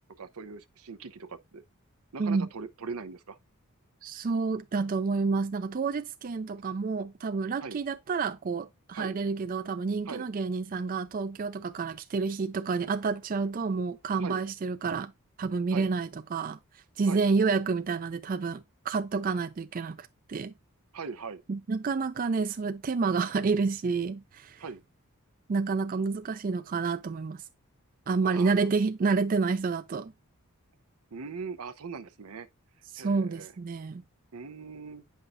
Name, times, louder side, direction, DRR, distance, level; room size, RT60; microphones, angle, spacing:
voice 1, 0.2-1.6 2.1-3.4 7.6-7.8 8.9-9.1 10.1-10.3 14.2-14.4 15.7-15.9 17.1-17.2 20.9-21.4 24.6-24.8 28.2-28.5 31.1-32.5 33.0-33.5 34.3-35.0, right 5 dB, 80° right, 0.7 m, -40 dB
voice 2, 4.0-15.1 15.4-20.5 21.5-24.6 25.5-27.4 28.1-30.1 32.9-34.0, right 4 dB, 40° right, 0.4 m, -29 dB
9.0 x 5.6 x 2.6 m
head